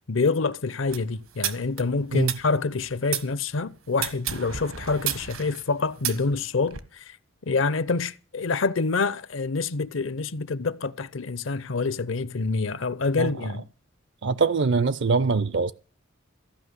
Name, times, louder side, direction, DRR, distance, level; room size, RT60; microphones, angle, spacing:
voice 1, 0.1-7.2 7.5-13.6, left 4 dB, 70° left, 0.7 m, -27 dB
sound 1, 0.9-3.3 3.9-6.8, right 10 dB, 80° right, 1.4 m, -32 dB
voice 2, 14.2-15.7, right 4 dB, 60° right, 0.5 m, -23 dB
15.0 x 5.8 x 9.7 m
head